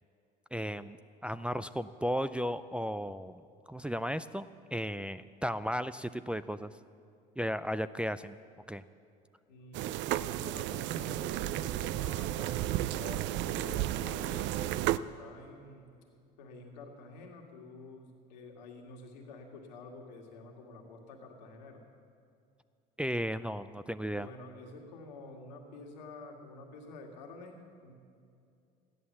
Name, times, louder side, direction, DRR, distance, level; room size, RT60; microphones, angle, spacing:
voice 1, 0.5-1.0 1.2-3.4 3.7-6.7 7.4-8.4 8.7-8.8 23.0-24.3, equal, 5° right, 11 dB, 0.4 m, -35 dB
voice 2, 9.5-15.9 16.4-21.8 24.1-27.9, left 3 dB, 85° left, 2 dB, 2.0 m, -49 dB
sound 1, 9.7-15.0, right 14 dB, 60° right, 0.5 m, -33 dB
14.0 x 11.0 x 7.3 m, 2.5 s
hypercardioid pair, 70°, 21 cm